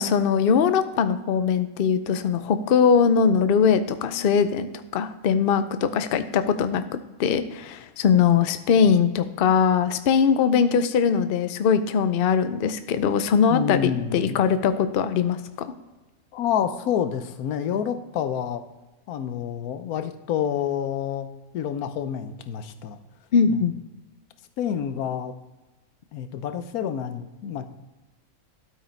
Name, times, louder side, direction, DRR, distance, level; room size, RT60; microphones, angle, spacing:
voice 1, 0.0-4.7 4.9-6.8 7.2-15.7 23.3-23.7, left 6 dB, 60° left, 11 dB, 0.6 m, -21 dB
voice 2, 13.5-14.4 16.3-18.6 19.1-21.3 21.5-23.0 23.5-23.6 24.6-25.3 26.1-27.7, left 8 dB, 90° left, 10 dB, 1.2 m, -28 dB
12.5 x 4.8 x 4.4 m, 1.2 s
omnidirectional pair, 1.5 m